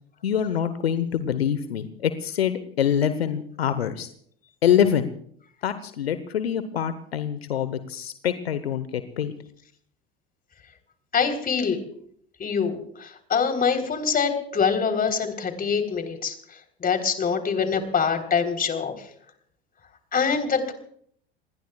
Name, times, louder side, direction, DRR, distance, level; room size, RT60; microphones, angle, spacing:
voice 1, 0.2-4.1 4.6-5.1 5.6-9.4, left 9 dB, 80° left, 12 dB, 1.0 m, -25 dB
voice 2, 11.1-11.8 12.4-16.3 16.8-18.9 20.1-20.7, left 6 dB, 30° left, 6 dB, 3.7 m, -24 dB
28.0 x 20.5 x 2.3 m, 0.62 s
figure-of-eight pair, 75°, 30 cm